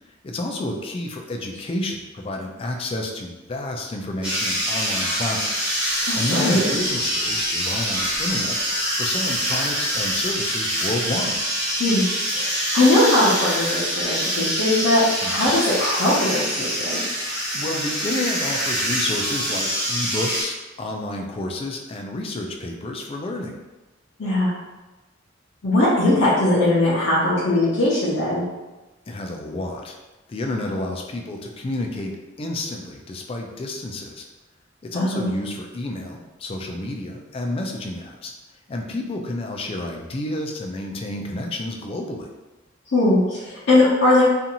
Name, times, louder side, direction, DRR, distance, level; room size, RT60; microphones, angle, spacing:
voice 1, 0.2-5.7 6.1-11.4 15.2-15.5 17.5-23.6 29.1-30.0 30.3-34.2 34.8-38.3 38.7-42.3, left 1 dB, 30° left, 2 dB, 0.3 m, -30 dB
sound 1, 4.2-20.4, equal, 5° right, 0.7 m, -25 dB
voice 2, 6.0-6.7 11.8-17.0 24.2-24.5 25.6-28.4 34.9-35.4 42.9-44.2, left 1 dB, 65° left, -8 dB, 0.6 m, -20 dB
2.6 x 2.4 x 2.8 m, 1.1 s
head